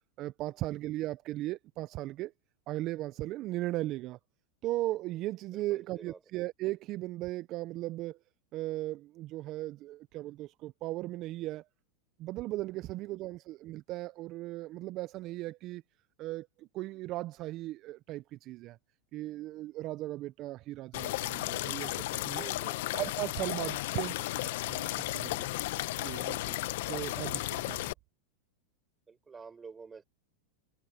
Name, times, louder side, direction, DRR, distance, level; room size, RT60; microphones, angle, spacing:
voice 1, 0.2-2.3 2.7-4.2 4.6-8.2 8.5-11.6 12.2-15.8 16.2-18.8 19.1-22.4 22.9-25.5 26.0-26.6 26.9-27.8, right 17 dB, 45° right, 0.5 m, -37 dB
voice 2, 5.5-6.2 12.7-13.0 22.4-23.0 23.5-24.2 26.6-27.1 27.7-27.9 29.1-30.0, right 5 dB, 15° right, 6.3 m, -50 dB
sound 1, 20.9-27.9, left 17 dB, 65° left, 0.8 m, -34 dB
hypercardioid pair, 120°, 0 cm